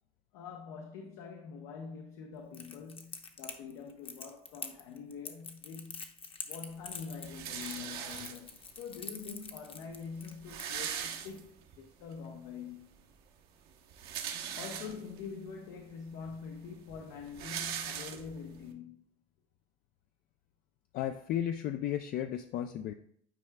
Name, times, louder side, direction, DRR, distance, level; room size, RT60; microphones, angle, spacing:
voice 1, 0.3-6.1 6.5-8.5 8.8-12.9 14.6-19.0, left 6 dB, 75° left, 0.8 m, -45 dB
Crackle, 2.5-11.0, left 5 dB, 30° left, 0.8 m, -45 dB
sound 1, 7.2-8.7 9.5-9.6 9.8-9.9 10.2-11.8 12.2-12.3 13.7-15.2 15.9-16.0 16.2-18.6, right 9 dB, 60° right, 0.9 m, -40 dB
voice 2, 20.9-22.9, left 11 dB, 55° left, 0.4 m, -34 dB
9.4 x 4.6 x 2.2 m
supercardioid pair, 85°, 18 cm